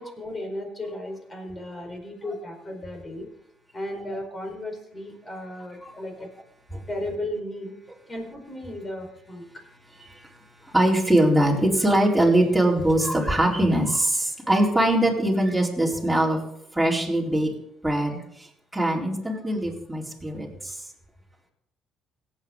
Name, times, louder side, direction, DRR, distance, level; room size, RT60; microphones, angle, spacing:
voice 1, 0.0-3.3 3.7-6.3 6.9-7.8 8.1-9.4, left 1 dB, 30° left, 3 dB, 4.7 m, -35 dB
voice 2, 10.7-16.4 16.7-17.5 17.8-18.2 18.7-20.8, right 1 dB, 5° right, -3 dB, 4.2 m, -22 dB
18.0 x 8.2 x 3.9 m, 0.76 s
supercardioid pair, 65°, 0 cm